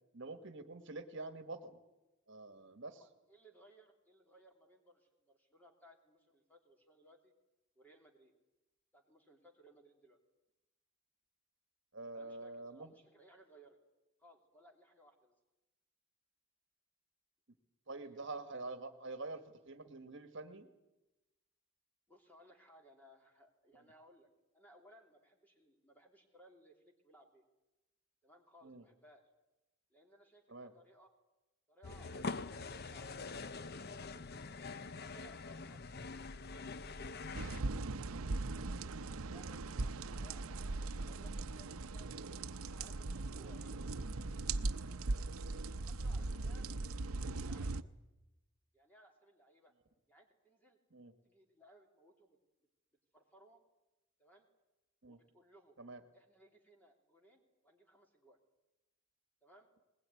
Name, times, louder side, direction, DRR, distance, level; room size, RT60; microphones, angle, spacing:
voice 1, 0.1-1.8 2.3-3.0 11.9-12.9 17.9-20.7 28.6-28.8 30.5-30.7 37.6-37.8 50.9-51.1 55.0-55.2 55.8-56.0, right 3 dB, 60° right, 9 dB, 1.6 m, -46 dB
voice 2, 2.8-7.3 7.7-8.3 8.9-10.2 12.1-13.8 14.2-15.3 18.1-18.3 22.1-24.3 24.5-27.4 28.2-29.2 29.9-31.1 31.7-34.3 34.8-36.0 36.4-36.7 37.1-42.1 42.7-43.8 44.6-45.3 45.7-46.7 47.3-47.9 48.7-49.7 50.1-50.8 51.2-52.4 53.1-53.6 54.2-54.5 55.0-55.8 56.1-58.4 59.4-59.7, equal, 10° left, 2 dB, 3.1 m, -64 dB
sound 1, 31.8-37.6, left 4 dB, 50° left, 0.7 m, -44 dB
sound 2, 37.3-47.8, right 3 dB, 85° right, 0.7 m, -39 dB
20.5 x 20.0 x 9.8 m, 1.0 s
head